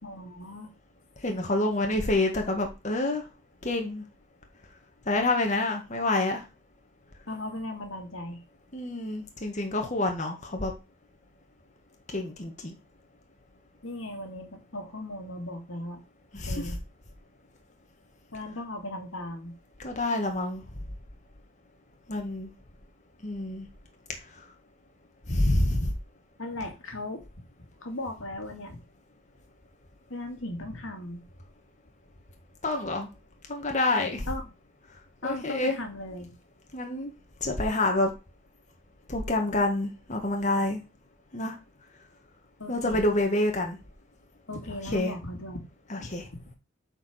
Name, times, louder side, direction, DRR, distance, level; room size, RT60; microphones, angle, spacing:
voice 1, 0.0-0.7 7.3-8.4 13.8-16.0 16.5-16.8 18.3-19.5 26.4-27.2 27.8-28.8 30.1-31.2 34.3-34.5 35.2-36.4 42.6-43.1 44.5-45.6 46.0-46.1, left 1 dB, 85° left, 4 dB, 2.5 m, -37 dB
voice 2, 1.2-3.2 3.6-4.0 5.1-6.4 8.7-10.7 12.1-12.7 16.3-16.8 19.8-20.6 22.1-22.5 23.2-23.7 25.3-25.9 32.6-33.1 33.5-34.3 35.2-35.8 36.7-37.1 37.4-38.1 39.1-40.8 41.3-41.5 42.7-43.8 44.9-45.1 45.9-46.3, left 2 dB, 35° left, 3 dB, 1.8 m, -27 dB
8.4 x 5.1 x 6.5 m, 0.28 s
head